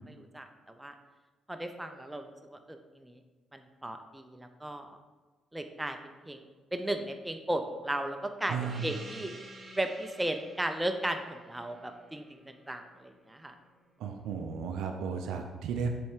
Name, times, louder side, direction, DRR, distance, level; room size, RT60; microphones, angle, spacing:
voice 1, 0.1-0.5 0.8-0.9 1.5-3.2 3.5-5.0 5.5-6.4 6.7-9.3 9.8-13.5, right 1 dB, 10° right, 6 dB, 0.6 m, -36 dB
voice 2, 8.5-8.9 14.0-15.9, right 6 dB, 65° right, 5 dB, 0.5 m, -34 dB
Gong, 8.6-13.6, right 2 dB, 30° right, 1.3 m, -50 dB
6.9 x 3.4 x 4.7 m, 1.3 s
figure-of-eight pair, 40°, 0 cm